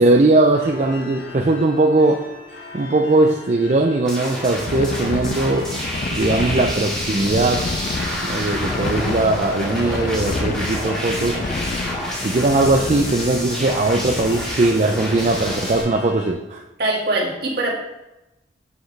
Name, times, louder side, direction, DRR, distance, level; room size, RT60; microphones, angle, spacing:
voice 1, 0.0-2.2 2.7-5.7 6.1-7.6 8.2-11.4 12.2-16.6, right 2 dB, 40° right, 2 dB, 0.4 m, -19 dB
sound 1, 0.6-16.3, left 3 dB, 80° left, 1.8 m, -39 dB
sound 2, 4.0-15.8, equal, 5° left, 2.0 m, -29 dB
sound 3, 4.6-16.0, left 3 dB, 45° left, 0.4 m, -29 dB
voice 2, 16.8-17.8, right 2 dB, 60° right, -2 dB, 1.8 m, -23 dB
7.1 x 6.4 x 3.3 m, 0.96 s
head